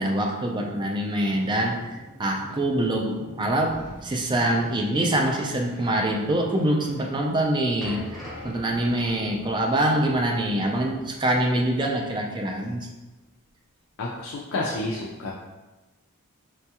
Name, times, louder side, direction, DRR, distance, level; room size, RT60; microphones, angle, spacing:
voice 1, 0.0-1.8 2.2-12.9, right 1 dB, 20° right, 1 dB, 0.4 m, -25 dB
Boat Water vehicle, 1.3-9.1, equal, 50° right, 0.8 m, -45 dB
sound 1, 7.8-12.1 12.3-12.5 13.2-13.3, left 1 dB, ahead, 0.8 m, -44 dB
voice 2, 14.0-15.3, left 2 dB, 65° left, -2 dB, 0.4 m, -30 dB
4.4 x 2.3 x 2.8 m, 1.1 s
head